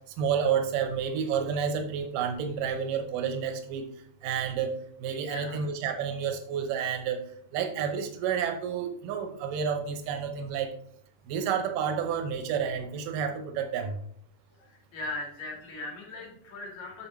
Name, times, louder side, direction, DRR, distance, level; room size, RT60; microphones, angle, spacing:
voice 1, 0.2-3.9 4.2-7.2 7.5-10.8 11.3-14.0, right 7 dB, 85° right, 5 dB, 2.5 m, -30 dB
voice 2, 5.3-5.7 14.6-17.1, left 2 dB, 60° left, -1 dB, 3.1 m, -39 dB
8.9 x 6.2 x 3.1 m, 0.65 s
omnidirectional pair, 3.7 m